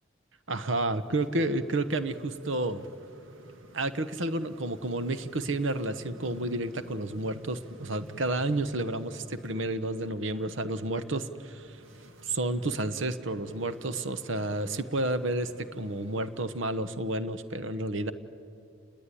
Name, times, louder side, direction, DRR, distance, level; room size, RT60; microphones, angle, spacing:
voice 1, 0.5-2.8 3.7-11.7 12.2-18.1, right 2 dB, 70° right, 12 dB, 1.1 m, -31 dB
sound 1, 0.7-17.3, right 1 dB, 90° right, 2.0 m, -51 dB
29.5 x 20.0 x 9.9 m, 2.6 s
head